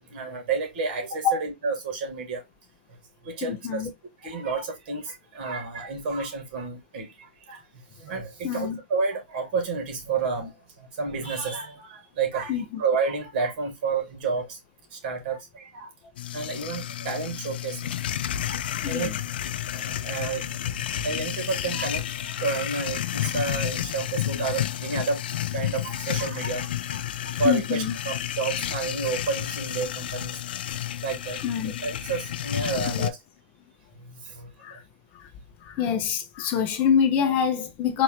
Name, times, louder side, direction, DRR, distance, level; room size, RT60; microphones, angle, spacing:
voice 1, 0.1-2.4 3.3-3.8 4.2-7.1 7.5-7.6 8.0-14.6 14.9-15.9 16.3-17.9 18.9-19.1 19.7-25.2 25.5-27.0 27.4-30.4 31.0-31.4 31.8-33.2 34.0-34.5, right 4 dB, 55° right, 1.9 m, -30 dB
voice 2, 3.4-3.9 8.4-8.8 12.5-12.8 18.8-19.2 27.3-28.0 31.4-31.7 32.9-33.1 34.6-34.8 35.1-35.3 35.6-38.0, left 7 dB, 35° left, 0.6 m, -25 dB
sound 1, 16.2-33.1, left 11 dB, 75° left, 0.4 m, -31 dB
4.2 x 2.6 x 2.8 m
hypercardioid pair, 140°, 5 cm